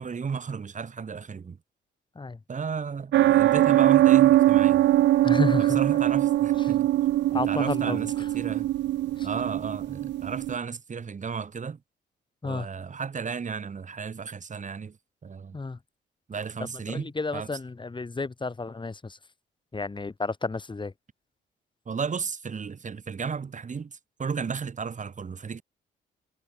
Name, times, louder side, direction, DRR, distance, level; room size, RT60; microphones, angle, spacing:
voice 1, 0.0-1.6 2.5-4.8 5.6-6.9 7.3-8.7 9.2-11.8 12.4-15.0 15.2-15.6 16.3-17.5 21.8-25.6, right 5 dB, 40° right, 3.4 m, -34 dB
sound 1, 3.1-10.6, right 14 dB, 65° right, 0.4 m, -21 dB
voice 2, 5.2-5.8 6.6-6.7 7.3-8.3 9.2-9.3 12.4-12.7 15.5-15.8 16.6-19.2 19.7-20.9, left 3 dB, 25° left, 4.0 m, -31 dB
cardioid pair, 90°, 20 cm